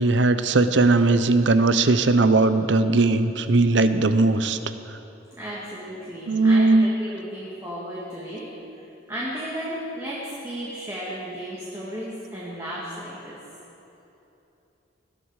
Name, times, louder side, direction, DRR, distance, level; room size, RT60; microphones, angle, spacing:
voice 1, 0.0-4.6 6.3-6.9, right 3 dB, 70° right, 11 dB, 0.7 m, -19 dB
voice 2, 5.4-8.4 9.1-13.4, equal, 15° right, -7 dB, 2.0 m, -34 dB
19.0 x 12.5 x 4.8 m, 2.9 s
head